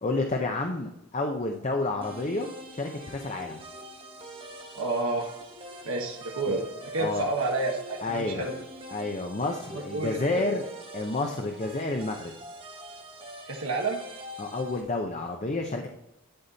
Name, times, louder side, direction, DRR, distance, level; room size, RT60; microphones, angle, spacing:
voice 1, 0.0-3.6 6.5-6.6 7.0-7.3 8.0-8.5 8.9-10.6 10.9-12.3 14.4-15.9, left 2 dB, 30° left, 3 dB, 0.7 m, -30 dB
sound 1, 2.0-14.8, equal, 25° right, 1.1 m, -44 dB
voice 2, 4.7-5.3 5.8-8.6 9.7-10.6 13.5-14.0, right 2 dB, 75° right, -1 dB, 1.2 m, -30 dB
11.5 x 4.2 x 4.0 m, 0.88 s
head